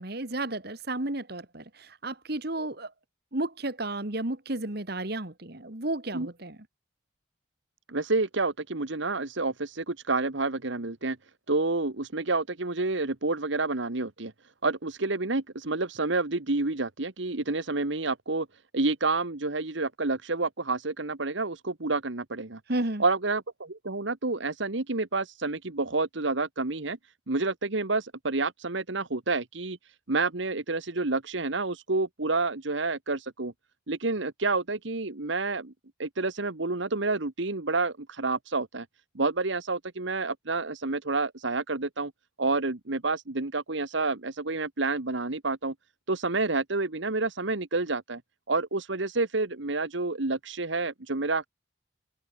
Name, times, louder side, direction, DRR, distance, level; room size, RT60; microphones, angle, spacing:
voice 1, 0.0-2.9 3.3-6.6 22.7-23.0, right 2 dB, 50° right, 1.9 m, -32 dB
voice 2, 7.9-11.2 11.5-14.3 14.6-18.5 18.7-22.6 23.0-27.0 27.3-29.8 30.1-33.5 33.9-35.7 36.0-38.9 39.1-42.1 42.4-45.7 46.1-48.2 48.5-51.5, right 3 dB, 70° right, 1.4 m, -29 dB
head